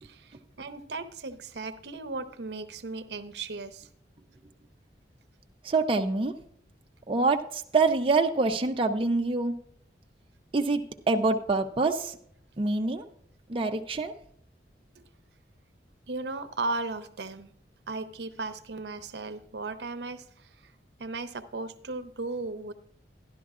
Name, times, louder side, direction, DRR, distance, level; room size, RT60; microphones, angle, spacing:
voice 1, 0.0-3.9 15.0-15.1 16.1-17.5 17.9-20.5 21.0-22.7, right 3 dB, 65° right, 10 dB, 0.7 m, -36 dB
voice 2, 5.6-6.3 7.1-9.6 10.5-10.8 11.1-12.2 12.6-13.0 13.5-14.1, right 3 dB, 30° right, 3 dB, 0.5 m, -25 dB
13.0 x 11.0 x 2.4 m, 0.67 s
head